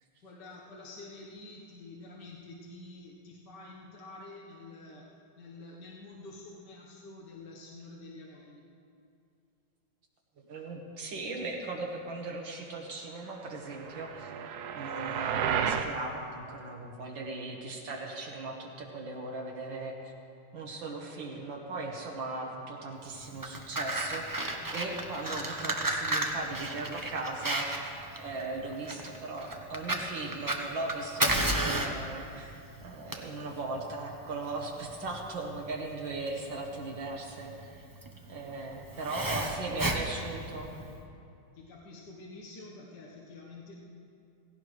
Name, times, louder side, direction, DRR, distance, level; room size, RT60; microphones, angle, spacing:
voice 1, 0.2-8.7 38.9-39.7 41.5-43.8, left 2 dB, 65° left, -3 dB, 1.9 m, -48 dB
voice 2, 10.5-14.4 14.7-20.1 20.5-37.9 38.3-40.8, right 3 dB, 85° right, 0 dB, 2.1 m, -38 dB
sound 1, 13.7-15.9, right 7 dB, 65° right, 1.1 m, -32 dB
Fire, 23.2-41.0, right 1 dB, 30° right, 0.3 m, -33 dB
17.0 x 17.0 x 3.2 m, 2.5 s
omnidirectional pair, 2.0 m